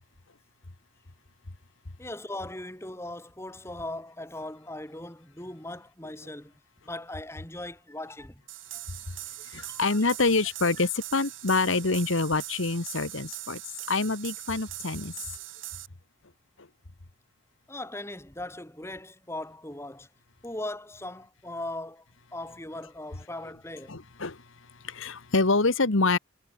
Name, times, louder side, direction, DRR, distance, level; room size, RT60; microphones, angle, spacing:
voice 1, 2.0-6.5 6.8-8.4 8.7-8.8 9.6-10.1 10.8-10.9 17.7-20.1 20.4-24.0, left 1 dB, 10° left, 2.1 m, -39 dB
sound 1, 8.5-15.9, right 15 dB, 65° right, 4.0 m, -41 dB
voice 2, 9.5-13.6 13.9-15.1 23.9-24.4 24.8-26.2, left 3 dB, 70° left, 1.4 m, -26 dB
head